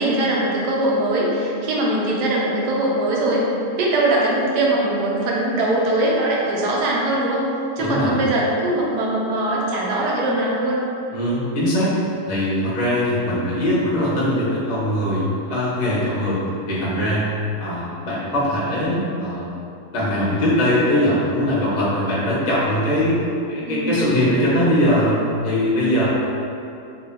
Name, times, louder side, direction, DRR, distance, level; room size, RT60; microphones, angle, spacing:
voice 1, 0.0-3.4 3.8-7.5 7.8-10.8 23.7-24.1, right 1 dB, 75° right, -4 dB, 1.2 m, -21 dB
voice 2, 7.8-8.2 11.1-11.9 12.3-15.2 15.5-16.4 16.7-17.3 17.6-19.5 19.9-23.2 23.5-25.2 25.4-26.1, equal, 35° left, -8 dB, 0.6 m, -21 dB
2.9 x 2.7 x 3.3 m, 2.6 s
omnidirectional pair, 1.8 m